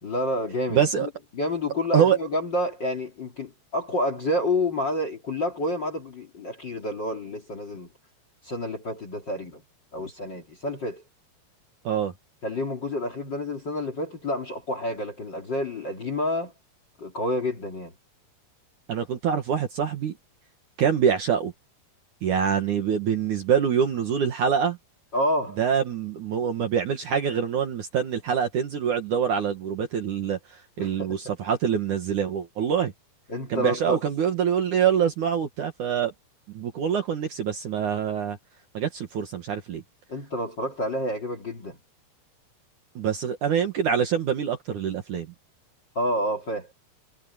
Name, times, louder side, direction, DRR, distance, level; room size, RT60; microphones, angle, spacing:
voice 1, 0.0-7.9 8.4-9.6 9.9-11.0 12.4-16.5 17.0-17.9 25.1-25.6 30.8-31.1 33.3-34.0 40.1-41.8 45.9-46.7, left 1 dB, 35° left, 2.3 m, -29 dB
voice 2, 0.7-1.1 1.9-2.2 11.8-12.1 18.9-20.2 20.8-21.5 22.2-24.8 25.6-32.9 33.5-36.1 36.5-38.4 38.7-39.8 43.0-45.3, right 8 dB, 60° right, 2.5 m, -25 dB
omnidirectional pair, 5.0 m